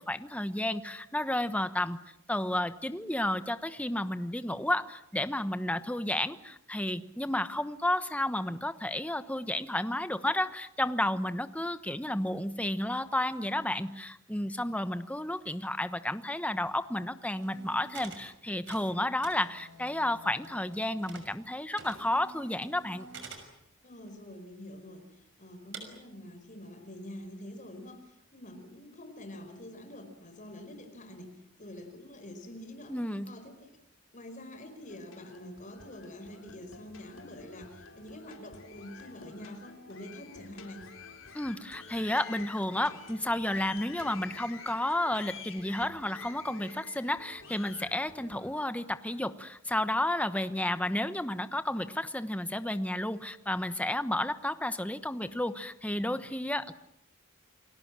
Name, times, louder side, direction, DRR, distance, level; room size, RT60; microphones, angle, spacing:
voice 1, 0.0-2.0 2.3-23.1 32.9-33.3 41.3-56.7, left 1 dB, 5° left, 11 dB, 1.1 m, -32 dB
sound 1, 17.3-18.3 18.5-21.5 21.7-23.5 24.1-24.2 24.8-24.9 25.7-25.8, right 4 dB, 60° right, 6.2 m, -48 dB
voice 2, 23.8-33.0 33.2-33.8 34.1-40.9, left 1 dB, 40° left, 7 dB, 5.1 m, -46 dB
sound 2, 34.8-48.5, left 5 dB, 70° left, 4.0 m, -49 dB
29.5 x 22.0 x 7.6 m, 0.79 s
head